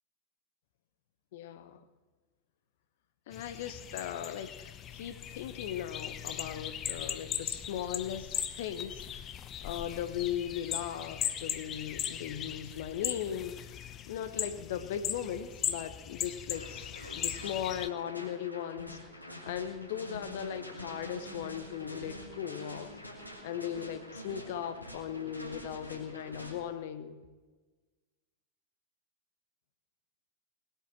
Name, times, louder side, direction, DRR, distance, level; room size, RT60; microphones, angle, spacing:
voice 1, 1.3-1.8 3.3-9.3 9.6-13.8 14.1-16.9 17.1-23.0 23.4-27.2, left 9 dB, 55° left, 11 dB, 1.0 m, -38 dB
sound 1, 3.3-17.9, left 9 dB, 30° left, 0.8 m, -39 dB
sound 2, 16.5-26.5, left 1 dB, 90° left, 2.8 m, -46 dB
19.5 x 8.7 x 7.3 m, 1.3 s
figure-of-eight pair, 90°, 0 cm